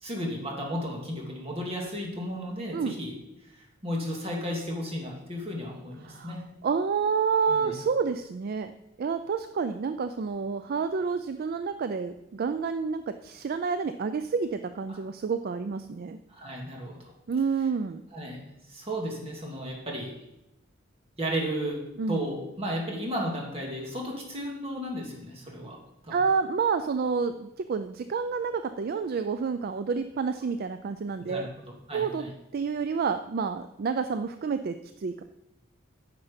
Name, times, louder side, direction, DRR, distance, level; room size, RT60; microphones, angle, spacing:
voice 1, 0.0-3.1 3.8-6.4 7.5-7.7 14.9-15.0 16.3-17.0 18.1-18.4 18.7-20.1 21.2-21.8 22.1-25.8 26.0-26.1 31.2-31.5 31.9-32.3, equal, 30° right, -1 dB, 2.1 m, -34 dB
voice 2, 6.0-6.4 6.6-8.7 9.0-16.2 17.3-18.0 22.0-22.2 26.1-31.5 31.9-32.2 32.5-35.2, right 5 dB, 50° right, 10 dB, 0.4 m, -29 dB
9.6 x 5.9 x 5.1 m, 0.91 s
head